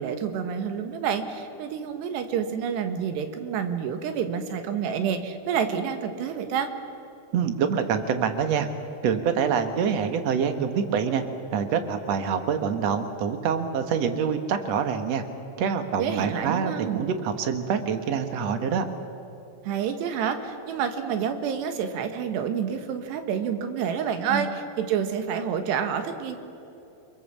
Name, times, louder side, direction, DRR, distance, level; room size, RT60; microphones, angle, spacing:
voice 1, 0.0-6.7 16.0-17.0 19.7-26.4, right 7 dB, 90° right, 7 dB, 3.7 m, -28 dB
voice 2, 7.3-8.7 9.0-11.2 11.5-15.2 15.6-18.9 24.3-24.5, right 7 dB, 60° right, 7 dB, 1.8 m, -26 dB
29.5 x 21.5 x 7.3 m, 2.8 s
omnidirectional pair, 4.8 m